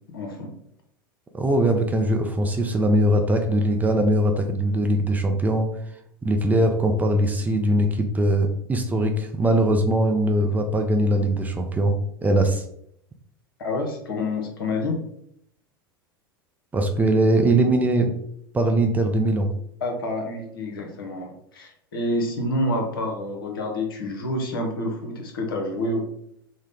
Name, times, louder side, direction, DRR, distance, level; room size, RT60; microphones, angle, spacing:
voice 1, 0.1-0.5 13.6-15.0 19.8-26.1, left 1 dB, 70° left, 3 dB, 0.8 m, -28 dB
voice 2, 1.3-5.7 6.2-12.6 16.7-18.1 18.5-19.5, right 1 dB, 15° right, 4 dB, 0.4 m, -21 dB
3.7 x 2.1 x 3.3 m, 0.72 s
figure-of-eight pair, 85°, 12 cm